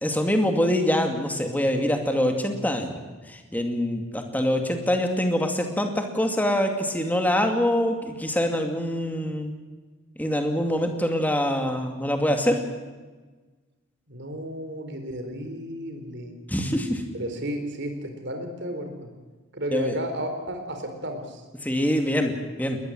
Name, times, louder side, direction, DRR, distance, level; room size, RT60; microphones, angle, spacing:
voice 1, 0.0-3.0 3.3-9.5 10.2-12.6 16.5-17.0 19.7-20.0 21.6-22.3 22.6-22.8, equal, 10° left, 4 dB, 2.4 m, -24 dB
voice 2, 14.1-16.3 17.1-19.1 19.5-21.4, equal, 55° right, 6 dB, 4.0 m, -33 dB
21.0 x 20.5 x 7.8 m, 1.3 s
head